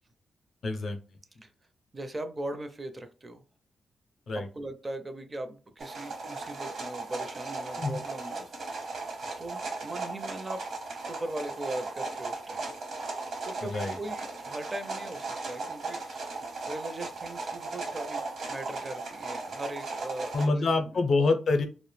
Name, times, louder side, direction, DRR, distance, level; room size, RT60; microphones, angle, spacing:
voice 1, 0.6-1.0 4.3-4.5 7.8-8.0 13.6-14.0 20.3-21.6, left 3 dB, 60° left, 6 dB, 0.5 m, -26 dB
voice 2, 1.9-3.4 4.6-8.9 9.4-10.6 11.1-12.6 13.5-16.4 16.7-18.2 18.5-20.9, right 1 dB, 30° right, 8 dB, 0.4 m, -39 dB
sound 1, 5.8-20.5, right 3 dB, 65° right, 0.8 m, -37 dB
2.2 x 2.0 x 3.1 m, 0.34 s
cardioid pair, 85°, 0 cm